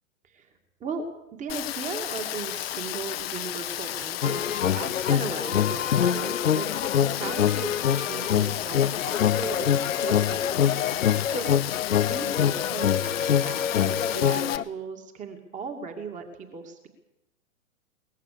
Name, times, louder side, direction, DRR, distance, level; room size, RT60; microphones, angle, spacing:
voice 1, 1.3-6.7 6.9-10.5 11.0-11.5 12.1-16.3 16.5-16.9, right 5 dB, 20° right, 4 dB, 2.5 m, -37 dB
Rain, 1.5-14.6, left 13 dB, 45° left, 1.3 m, -33 dB
sound 1, 4.2-14.6, left 9 dB, 70° left, 0.8 m, -25 dB
22.5 x 19.5 x 6.8 m, 0.87 s
figure-of-eight pair, 115°, 41 cm